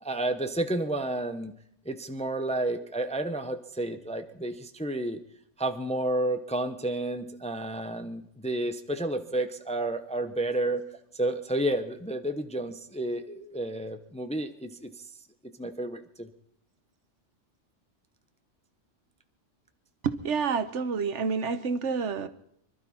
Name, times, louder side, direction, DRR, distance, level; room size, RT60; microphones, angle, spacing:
voice 1, 0.0-1.5 1.9-5.2 5.6-10.8 11.1-15.0 15.6-16.3, right 1 dB, 5° left, 8 dB, 0.6 m, -31 dB
voice 2, 20.0-22.3, right 5 dB, 75° right, 11 dB, 1.2 m, -28 dB
25.5 x 12.0 x 4.3 m, 0.73 s
omnidirectional pair, 1.2 m